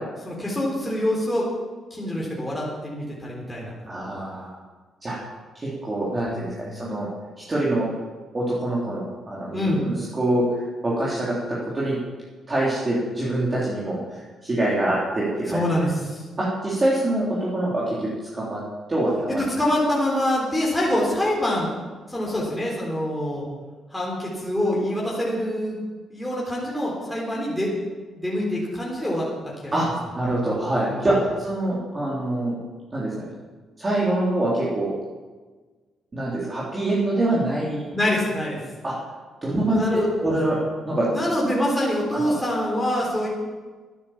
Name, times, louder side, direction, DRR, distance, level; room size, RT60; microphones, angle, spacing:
voice 1, 0.3-1.4 1.9-3.7 9.5-9.8 15.5-16.2 19.4-21.7 22.1-23.4 23.9-25.8 26.1-27.7 28.1-29.3 29.6-29.7 30.9-31.1 37.9-38.6 39.6-40.5 41.1-43.3, left 1 dB, 5° left, -5 dB, 3.9 m, -25 dB
voice 2, 3.9-4.5 5.0-5.2 5.6-7.1 7.5-7.9 8.3-12.0 12.5-15.6 16.4-18.0 18.3-18.6 18.9-19.4 29.7-29.9 30.1-32.6 32.9-33.3 33.8-34.9 36.1-37.9 38.8-38.9 39.4-40.6 40.8-41.1 42.1-42.3, right 1 dB, 25° right, -7 dB, 3.6 m, -25 dB
12.5 x 9.9 x 7.3 m, 1.4 s
cardioid pair, 90°, 0 cm